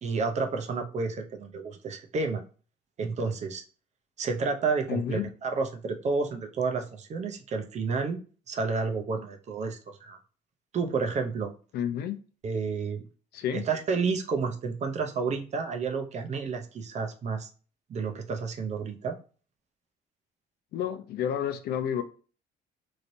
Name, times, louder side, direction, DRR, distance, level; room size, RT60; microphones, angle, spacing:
voice 1, 0.0-2.4 3.0-3.6 4.2-8.2 8.5-10.2 10.7-11.5 12.4-13.0 13.5-17.5 17.9-19.1, right 4 dB, 45° right, 5 dB, 0.7 m, -30 dB
voice 2, 4.9-5.3 11.7-12.2 13.3-13.6 20.7-22.0, left 9 dB, 70° left, 9 dB, 0.5 m, -30 dB
3.2 x 2.8 x 2.6 m, 0.38 s
cardioid pair, 110°, 17 cm